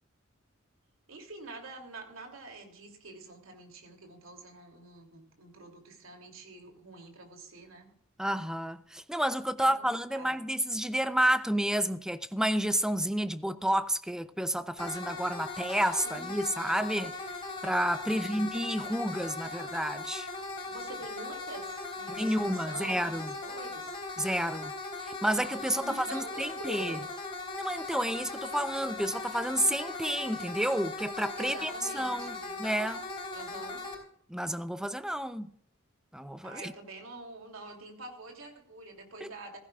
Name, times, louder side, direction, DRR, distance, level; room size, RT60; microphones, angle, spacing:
voice 1, 1.1-7.9 9.6-9.9 10.1-10.4 16.0-16.4 18.1-18.5 20.7-24.0 25.8-27.1 31.3-32.7 33.3-33.8 36.4-39.6, right 2 dB, 75° right, 3.0 m, -46 dB
voice 2, 8.2-17.1 17.6-20.3 22.1-23.3 24.2-24.7 25.0-27.0 27.6-33.0 34.3-35.5 36.1-36.7 39.2-39.3, equal, 5° right, 0.6 m, -30 dB
sound 1, 14.8-34.0, left 3 dB, 25° left, 3.9 m, -39 dB
16.0 x 15.5 x 2.5 m
head